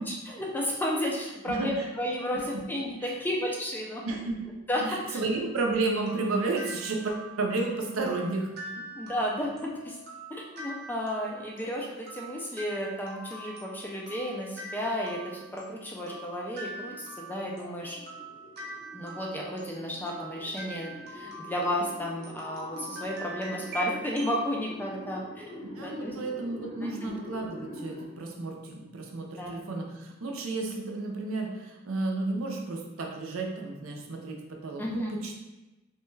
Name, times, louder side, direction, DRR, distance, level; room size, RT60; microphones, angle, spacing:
voice 1, 0.1-4.0 4.7-5.2 8.9-9.5 9.8-10.0 10.3-18.0 18.9-26.2 26.8-27.1 29.4-29.6 34.8-35.1, equal, 10° left, -2 dB, 0.3 m, -33 dB
voice 2, 4.0-4.4 4.8-8.8 25.8-35.3, right 3 dB, 80° right, 1 dB, 0.5 m, -32 dB
sound 1, 5.6-24.4, right 1 dB, 50° right, 0.8 m, -44 dB
sound 2, 14.6-28.0, left 1 dB, 80° left, 1.3 m, -46 dB
3.2 x 2.2 x 3.1 m, 1.1 s
head